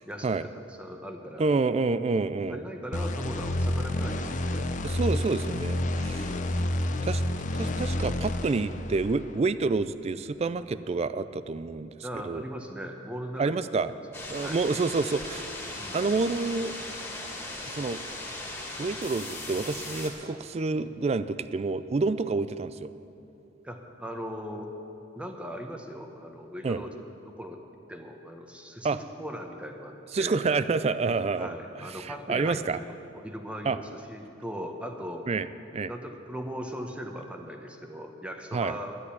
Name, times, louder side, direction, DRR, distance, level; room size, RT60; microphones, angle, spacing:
voice 1, 0.1-1.6 2.5-4.6 6.1-6.5 12.0-13.6 14.4-14.6 15.8-16.0 23.6-24.7 25.2-27.6 27.9-30.5 31.4-35.3 35.9-39.0, equal, 5° right, 3 dB, 0.8 m, -39 dB
voice 2, 1.4-2.6 4.8-6.4 7.0-7.2 7.5-12.4 13.4-13.9 14.3-15.4 15.9-16.7 17.7-18.0 18.8-22.9 26.6-26.8 28.8-29.0 30.1-32.8 33.6-33.8 35.3-35.5 35.7-35.9 38.5-38.8, right 4 dB, 35° right, 14 dB, 0.3 m, -28 dB
sound 1, 2.9-9.4, left 1 dB, 40° left, 0.6 m, -29 dB
sound 2, 14.1-20.1, left 2 dB, 15° left, 2.1 m, -38 dB
12.0 x 8.3 x 8.4 m, 2.9 s
head